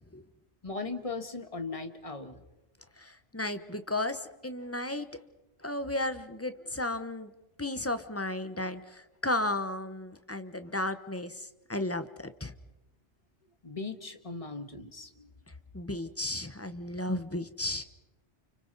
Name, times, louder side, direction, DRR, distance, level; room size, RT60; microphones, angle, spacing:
voice 1, 0.6-2.4 13.6-15.3, left 3 dB, 30° left, 7 dB, 1.6 m, -38 dB
voice 2, 3.0-5.1 5.6-7.3 7.6-12.5 15.7-17.8, left 1 dB, 15° left, 10 dB, 1.0 m, -34 dB
29.5 x 29.5 x 4.1 m, 1.0 s
omnidirectional pair, 1.2 m